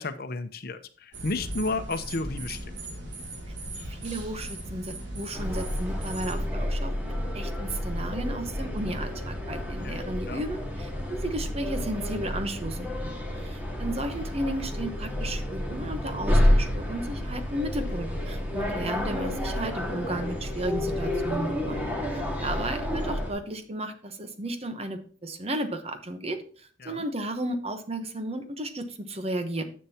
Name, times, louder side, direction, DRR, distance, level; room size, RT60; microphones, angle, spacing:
voice 1, 0.0-2.7 9.8-10.4 26.8-27.0, left 3 dB, 55° left, 10 dB, 0.8 m, -33 dB
sound 1, 1.1-6.5, right 1 dB, 70° right, 2.7 m, -38 dB
voice 2, 3.9-29.6, right 1 dB, 35° right, 8 dB, 1.0 m, -34 dB
sound 2, 5.3-23.3, left 1 dB, 10° right, 1.9 m, -29 dB
10.0 x 7.5 x 2.9 m, 0.43 s
head